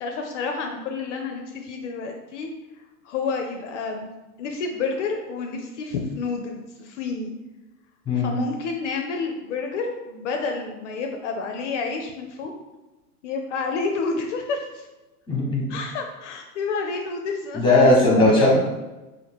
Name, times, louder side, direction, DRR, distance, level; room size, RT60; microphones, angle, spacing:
voice 1, 0.0-2.5 3.0-4.1 4.4-7.3 8.1-12.5 13.2-14.9 15.7-18.6, left 4 dB, 50° left, 3 dB, 0.5 m, -29 dB
voice 2, 15.3-15.7 17.5-18.6, left 1 dB, 10° left, -4 dB, 1.0 m, -18 dB
2.7 x 2.6 x 3.4 m, 1.1 s
hypercardioid pair, 115°, 46 cm